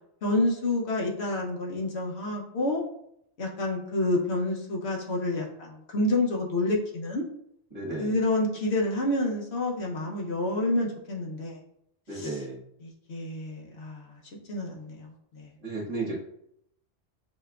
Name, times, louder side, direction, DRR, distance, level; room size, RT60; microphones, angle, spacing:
voice 1, 0.2-2.8 3.4-7.2 8.0-11.6 12.1-12.3 12.8-14.2 14.5-15.5, left 2 dB, 65° left, -1 dB, 1.1 m, -28 dB
voice 2, 7.7-8.2 12.1-12.6 15.6-16.2, right 2 dB, 30° right, -5 dB, 1.4 m, -33 dB
6.6 x 3.3 x 2.4 m, 0.74 s
omnidirectional pair, 1.2 m